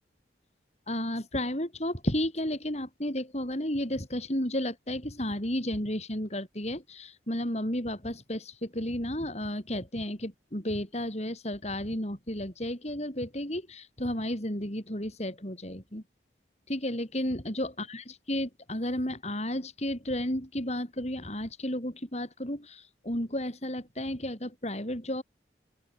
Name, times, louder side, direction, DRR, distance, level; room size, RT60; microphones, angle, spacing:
voice 1, 0.9-16.0 16.7-25.2, left 1 dB, 40° left, 6.0 m, -33 dB
open air
head